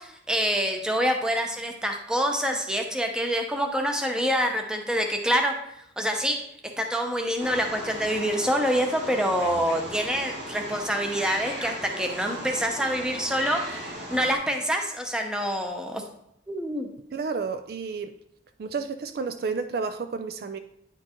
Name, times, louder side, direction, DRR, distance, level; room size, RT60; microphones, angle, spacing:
voice 1, 0.0-5.5 6.0-6.4 6.8-16.0 16.5-16.9, equal, 5° right, 3 dB, 0.7 m, -26 dB
Wild animals, 7.4-14.4, right 1 dB, 80° right, 1.7 m, -37 dB
voice 2, 17.1-18.1 18.6-20.6, right 4 dB, 55° right, 8 dB, 0.3 m, -31 dB
9.6 x 4.5 x 2.9 m, 0.76 s
head